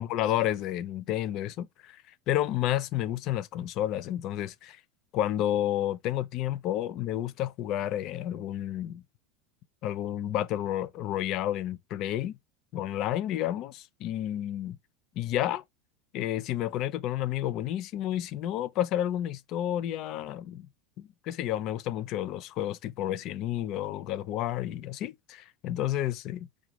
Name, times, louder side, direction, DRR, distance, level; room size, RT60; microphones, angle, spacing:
voice 1, 0.0-4.8 5.1-9.0 9.8-12.4 12.7-14.8 15.2-15.6 16.1-20.7 21.0-26.5, left 12 dB, 40° left, 0.4 m, -31 dB
4.9 x 2.1 x 3.0 m
supercardioid pair, 160°, 0 cm